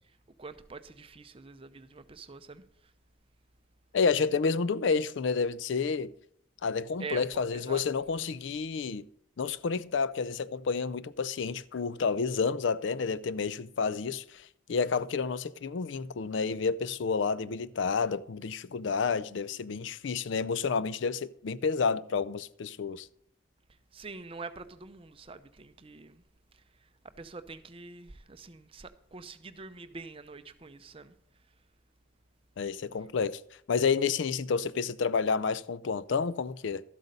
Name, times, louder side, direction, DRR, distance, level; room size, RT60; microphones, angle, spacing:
voice 1, 0.4-2.6 7.0-7.3 7.5-7.8 23.9-26.2 27.2-31.1, right 4 dB, 30° right, 0.6 m, -45 dB
voice 2, 3.9-6.1 6.6-9.0 9.4-23.1 32.6-33.4 33.7-36.8, left 5 dB, 65° left, 0.4 m, -30 dB
12.5 x 8.0 x 5.3 m
head